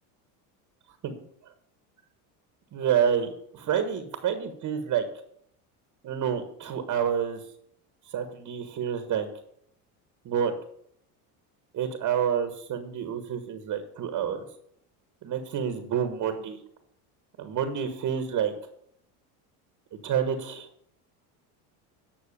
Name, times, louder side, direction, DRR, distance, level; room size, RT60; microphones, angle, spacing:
voice 1, 2.7-5.1 6.0-7.4 8.1-9.3 10.2-10.5 11.7-14.4 15.2-16.6 17.4-18.5 19.9-20.7, right 8 dB, 45° right, 8 dB, 1.6 m, -28 dB
10.0 x 6.3 x 6.8 m, 0.71 s
supercardioid pair, 105°, 43 cm